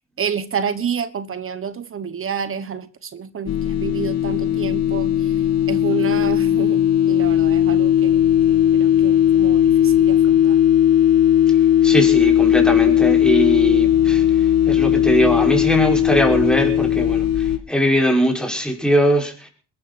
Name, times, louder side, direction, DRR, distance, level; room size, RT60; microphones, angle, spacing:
voice 1, 0.2-5.1 5.7-8.2 8.5-10.6, right 7 dB, 45° right, 1.2 m, -29 dB
sound 1, 3.5-17.6, left 11 dB, 60° left, 1.5 m, -17 dB
voice 2, 11.8-14.2 14.7-19.5, equal, 5° left, 5.4 m, -20 dB
21.5 x 12.5 x 4.3 m
cardioid pair, 90°, 30 cm